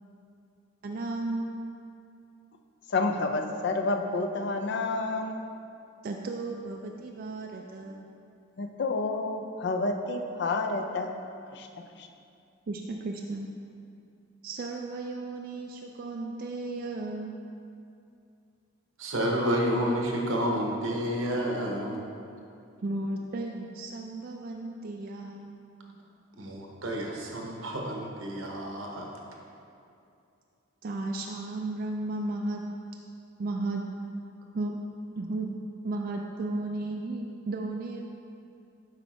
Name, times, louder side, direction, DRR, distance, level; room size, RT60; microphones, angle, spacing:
voice 1, 0.8-1.6 6.0-8.1 12.7-13.5 14.4-17.3 22.8-25.5 30.8-32.6 33.4-33.8 34.5-34.7 35.2-35.6 35.8-38.1, right 2 dB, 45° right, 1 dB, 0.3 m, -34 dB
voice 2, 2.9-5.4 8.6-11.1 11.5-11.7 11.9-12.1, left 3 dB, 55° left, 5 dB, 0.4 m, -29 dB
voice 3, 19.0-22.1 26.4-29.1, equal, 80° right, 0 dB, 1.0 m, -30 dB
7.6 x 5.2 x 3.1 m, 2.5 s
head